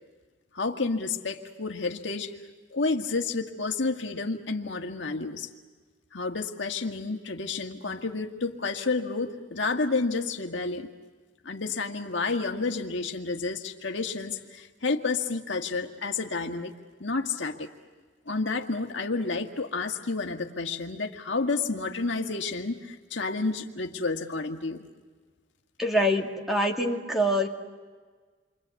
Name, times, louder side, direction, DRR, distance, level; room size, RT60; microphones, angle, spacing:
voice 1, 0.5-2.3 2.7-5.5 6.1-10.9 11.5-16.7 17.0-17.7 18.3-24.9, left 3 dB, 70° left, 4 dB, 1.8 m, -30 dB
voice 2, 25.8-27.5, equal, ahead, 0 dB, 2.4 m, -25 dB
29.0 x 24.5 x 8.3 m, 1.4 s
head